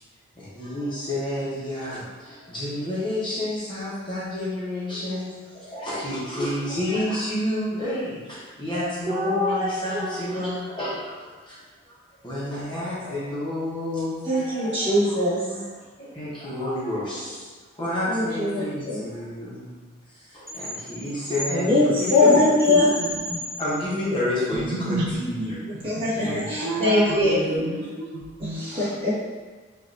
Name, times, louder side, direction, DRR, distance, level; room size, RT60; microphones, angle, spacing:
voice 1, 0.4-11.6 11.9-12.0 12.2-15.2 15.5-15.6 16.0-17.5 17.7-19.8 20.1-22.4 23.6-25.6 26.1-27.6, left 1 dB, 25° left, -8 dB, 1.0 m, -30 dB
voice 2, 8.7-10.3 14.3-15.5 18.1-19.0 21.5-23.0 23.3-23.4 25.8-27.3 28.4-29.2, left 2 dB, 25° right, -10 dB, 1.4 m, -22 dB
sound 1, 20.5-24.0, left 1 dB, ahead, 1.0 m, -34 dB
voice 3, 23.0-23.4 24.5-25.5 25.8-28.8, right 2 dB, 60° right, -1 dB, 0.4 m, -32 dB
5.0 x 2.6 x 2.7 m, 1.4 s
head